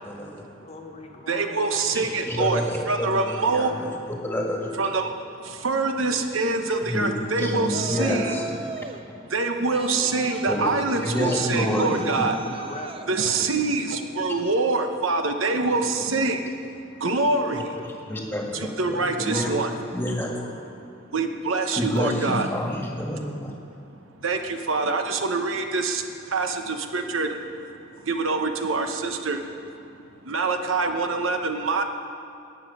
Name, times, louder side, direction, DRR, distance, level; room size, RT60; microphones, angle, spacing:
voice 1, 0.0-0.4 1.9-4.9 6.8-8.4 10.4-10.7 11.0-12.2 18.1-19.5 19.9-20.4 21.8-23.5, left 1 dB, 10° left, 0 dB, 1.6 m, -28 dB
voice 2, 0.6-2.1 7.0-7.4 9.6-10.3 12.0-13.5 17.0-17.9 19.2-20.0 20.3-20.7 22.2-22.8, left 2 dB, 30° left, 2 dB, 1.2 m, -41 dB
voice 3, 1.3-2.6 2.9-3.7 4.8-5.1 5.4-8.4 9.3-12.4 13.1-16.5 17.0-17.6 18.5-19.7 21.1-22.5 24.2-27.4 27.9-29.4 30.2-31.8, right 3 dB, 85° right, 6 dB, 1.0 m, -25 dB
Yell, 7.7-9.0 9.7-13.1, right 5 dB, 30° right, 0.6 m, -36 dB
19.0 x 7.9 x 5.5 m, 2.5 s
head